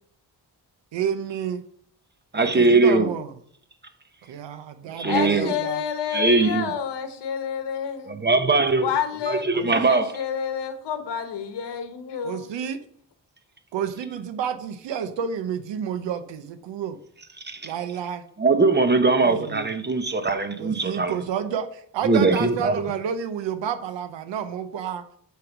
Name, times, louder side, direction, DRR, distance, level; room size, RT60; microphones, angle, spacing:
voice 1, 0.9-1.6 2.4-3.3 4.2-5.8 9.5-9.7 12.2-12.8 13.7-17.0 17.6-18.2 19.2-19.7 20.6-25.1, right 8 dB, 90° right, 0.8 m, -30 dB
voice 2, 2.3-3.1 5.0-5.5 6.1-6.7 8.1-8.9 9.3-10.1 17.4-17.7 18.4-21.1 22.0-22.8, right 3 dB, 25° right, 0.9 m, -20 dB
voice 3, 5.0-8.2 8.8-9.5 9.8-12.5, left 8 dB, 70° left, 1.0 m, -29 dB
7.7 x 3.5 x 5.9 m
cardioid pair, 90°, 42 cm